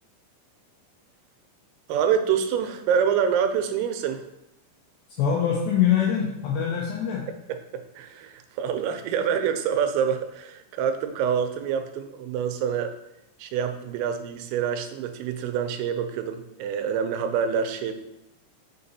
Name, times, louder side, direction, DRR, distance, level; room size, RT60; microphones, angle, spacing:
voice 1, 1.9-4.2 7.5-12.9 13.4-17.9, right 7 dB, 85° right, 8 dB, 3.3 m, -26 dB
voice 2, 5.2-7.2, left 8 dB, 85° left, -2 dB, 2.5 m, -23 dB
6.6 x 6.6 x 2.7 m, 0.86 s
omnidirectional pair, 5.9 m